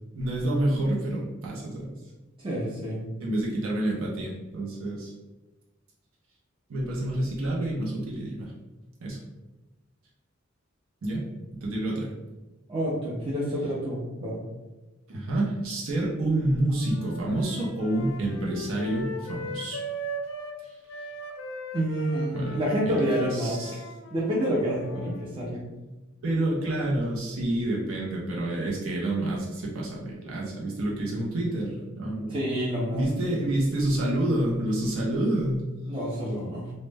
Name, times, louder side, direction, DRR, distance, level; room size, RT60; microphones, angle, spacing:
voice 1, 0.1-1.9 3.2-5.1 6.7-8.5 9.0-9.2 11.0-11.3 11.5-12.1 15.1-19.8 20.6-20.8 22.3-22.6 22.8-23.8 26.2-32.4 32.9-35.7, right 1 dB, 85° right, -3 dB, 0.5 m, -28 dB
voice 2, 2.4-3.0 12.7-14.4 21.7-23.6 24.1-25.6 32.3-33.0 33.4-33.5 35.9-36.7, equal, 25° right, -7 dB, 0.4 m, -28 dB
sound 1, 16.7-20.6 20.9-25.3, right 1 dB, 80° left, 0.4 m, -38 dB
2.0 x 2.0 x 3.2 m, 1.1 s
head